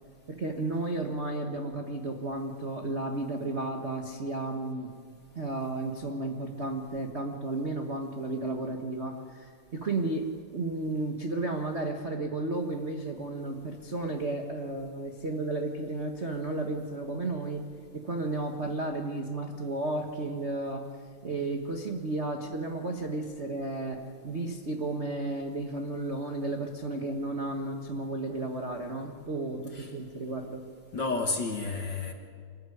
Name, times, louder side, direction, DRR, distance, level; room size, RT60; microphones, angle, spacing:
voice 1, 0.3-4.9 5.3-10.3 10.5-17.7 17.9-20.8 21.2-30.6, right 2 dB, 45° right, 3 dB, 0.8 m, -33 dB
voice 2, 30.9-32.1, left 3 dB, 45° left, 3 dB, 1.7 m, -31 dB
26.0 x 15.0 x 9.9 m, 2.2 s
omnidirectional pair, 3.5 m